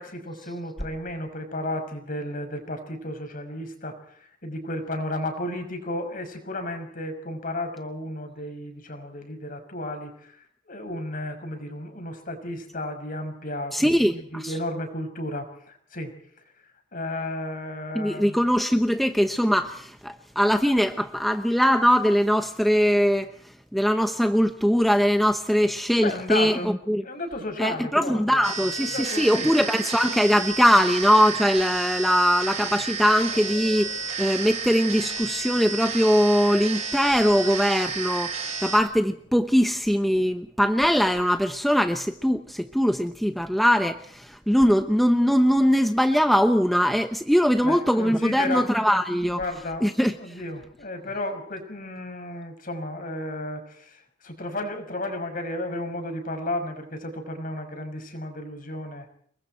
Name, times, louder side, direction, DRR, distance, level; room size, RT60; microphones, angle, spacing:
voice 1, 0.0-10.4 10.7-14.1 14.3-16.1 16.9-18.4 26.0-26.7 27.0-28.4 28.8-29.5 47.6-48.8 49.3-59.1, left 1 dB, 45° left, 6 dB, 6.1 m, -33 dB
voice 2, 13.7-14.5 17.9-23.3 23.7-27.0 27.6-49.4 49.8-50.1, equal, ahead, 6 dB, 0.9 m, -21 dB
sound 1, 28.4-38.8, right 5 dB, 35° right, 7.6 m, -31 dB
sound 2, 33.0-34.8 35.5-35.9 37.0-37.6 40.9-41.4, left 3 dB, 70° left, 5.9 m, -45 dB
29.5 x 21.0 x 4.5 m, 0.62 s
head